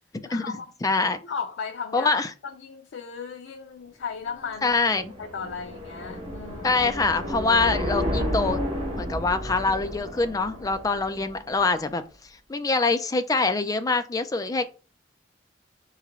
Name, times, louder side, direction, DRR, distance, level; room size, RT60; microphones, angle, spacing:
voice 1, 0.2-0.7 1.2-4.8 5.2-6.8, left 6 dB, 90° left, 0.4 m, -36 dB
voice 2, 0.8-1.2 1.9-2.3 4.6-5.1 6.6-8.6 9.0-12.0 12.5-14.7, left 3 dB, 20° left, 0.3 m, -24 dB
sound 1, 4.3-11.7, equal, 35° right, 1.4 m, -32 dB
3.7 x 3.2 x 3.6 m
head